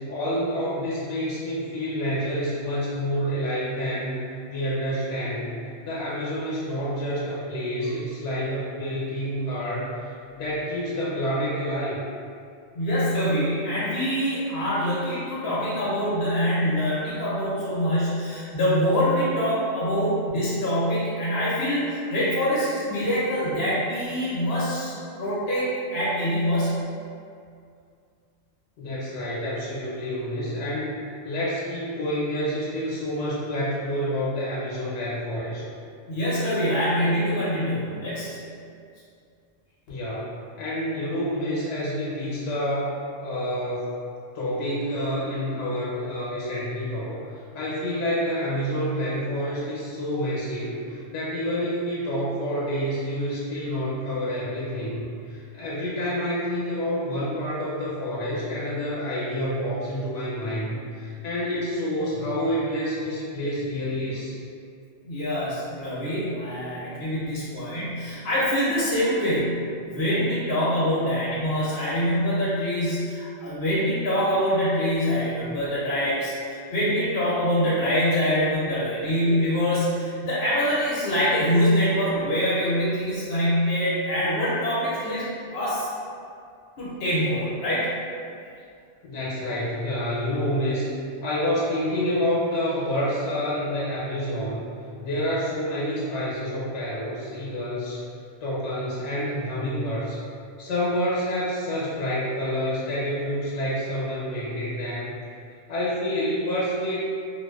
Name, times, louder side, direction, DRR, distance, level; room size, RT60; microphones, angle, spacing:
voice 1, 0.1-4.2 4.5-5.5 5.8-12.0 28.8-31.0 31.2-35.6 39.9-40.3 40.6-43.9 44.3-47.2 47.5-64.4 89.0-90.9 91.2-94.7 95.0-98.0 98.4-100.2 100.6-105.2 105.7-107.0, equal, 90° left, -7 dB, 0.9 m, -28 dB
voice 2, 12.7-26.8 36.1-38.4 65.0-69.6 69.9-85.3 85.5-85.9 86.8-87.9, equal, 60° left, -9 dB, 0.8 m, -24 dB
2.4 x 2.2 x 2.2 m, 2.3 s
omnidirectional pair, 1.2 m